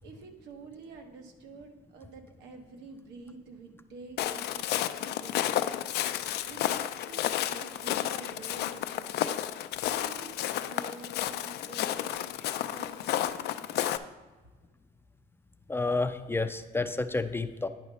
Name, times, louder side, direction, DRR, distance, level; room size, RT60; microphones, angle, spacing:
voice 1, 0.0-5.9 6.5-9.4 9.8-12.4 12.7-13.9, right 4 dB, 85° right, 4 dB, 1.3 m, -49 dB
Walk footsteps, 4.2-14.0, left 12 dB, 75° left, 0.4 m, -31 dB
voice 2, 15.7-17.7, left 3 dB, 15° left, 9 dB, 0.4 m, -30 dB
9.7 x 5.6 x 4.2 m, 1.3 s
cardioid pair, 110°, 17 cm